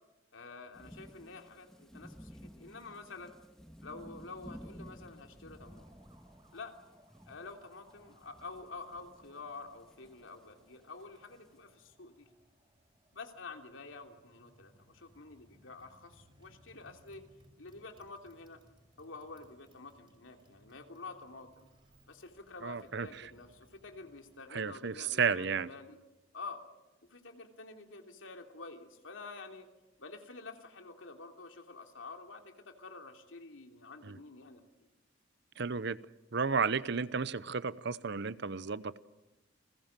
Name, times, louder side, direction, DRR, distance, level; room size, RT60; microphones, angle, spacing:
voice 1, 0.3-3.3 3.8-5.9 6.5-6.8 7.3-12.3 13.1-17.2 17.6-18.6 19.0-21.7 22.1-26.0 26.3-26.6 27.1-29.7 30.0-34.6, left 3 dB, 85° left, 4 dB, 3.1 m, -48 dB
sound 1, 0.7-11.6, equal, 5° left, 2.6 m, -54 dB
Motorcycle, 5.5-24.5, right 1 dB, 25° right, 5.5 m, -65 dB
voice 2, 22.6-23.3 24.5-25.7 34.0-34.2 35.6-36.0 36.3-39.0, right 5 dB, 60° right, 17 dB, 0.8 m, -33 dB
30.0 x 20.5 x 7.5 m, 1.0 s
head